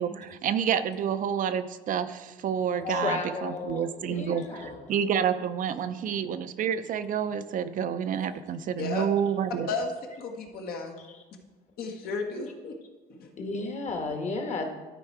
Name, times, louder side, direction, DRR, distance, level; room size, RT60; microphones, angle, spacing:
voice 1, 0.0-9.7, right 8 dB, 50° right, 11 dB, 0.5 m, -29 dB
voice 2, 2.8-4.9 6.1-6.2 8.2-8.3 11.1-11.2 13.4-14.6, left 3 dB, 40° left, 4 dB, 1.4 m, -33 dB
voice 3, 8.8-9.1 9.7-9.9 10.2-10.9 11.8-12.8 13.2-13.3, left 4 dB, 65° left, 2 dB, 1.3 m, -33 dB
12.0 x 4.5 x 4.6 m, 1.2 s
cardioid pair, 110°, 17 cm